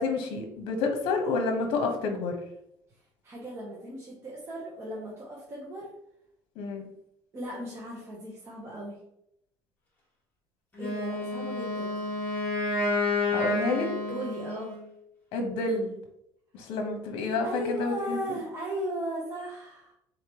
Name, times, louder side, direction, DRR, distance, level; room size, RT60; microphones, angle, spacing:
voice 1, 0.0-2.4 6.6-6.9 13.3-13.9 15.3-16.0 16.5-18.4, left 3 dB, 65° left, 4 dB, 0.9 m, -29 dB
voice 2, 3.2-5.9 7.3-9.0 10.8-12.1 14.1-14.7 17.4-19.9, right 1 dB, 30° right, -4 dB, 0.9 m, -36 dB
Wind instrument woodwind instrument, 10.7-14.9, left 2 dB, 20° left, 1.4 m, -30 dB
3.9 x 3.3 x 3.0 m, 0.77 s
cardioid pair, 145°, 10 cm